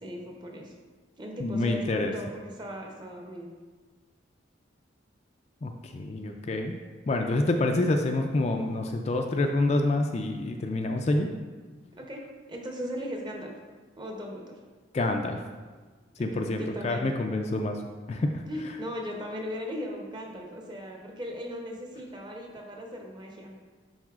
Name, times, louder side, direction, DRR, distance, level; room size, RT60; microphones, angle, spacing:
voice 1, 0.0-0.7 1.2-3.5 12.0-13.5 14.0-14.6 16.1-17.1 18.5-23.5, equal, 25° right, 0 dB, 0.7 m, -38 dB
voice 2, 1.4-2.1 5.6-6.8 7.1-11.3 14.9-15.4 16.2-17.8 18.1-18.3, left 2 dB, 35° left, 4 dB, 0.3 m, -27 dB
10.5 x 4.0 x 2.4 m, 1.4 s
head